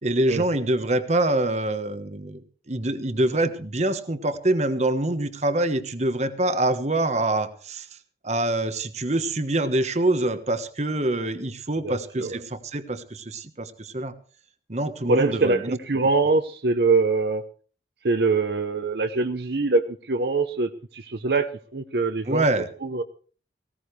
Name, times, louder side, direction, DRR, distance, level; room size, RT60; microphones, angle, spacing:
voice 1, 0.0-2.4 2.7-7.9 8.2-14.1 14.7-15.8 22.3-22.7, right 1 dB, 40° right, 10 dB, 1.2 m, -25 dB
voice 2, 11.8-12.4 15.0-17.4 18.0-22.4 22.8-23.0, right 3 dB, 65° right, 8 dB, 0.8 m, -23 dB
19.0 x 17.0 x 3.3 m, 0.39 s
head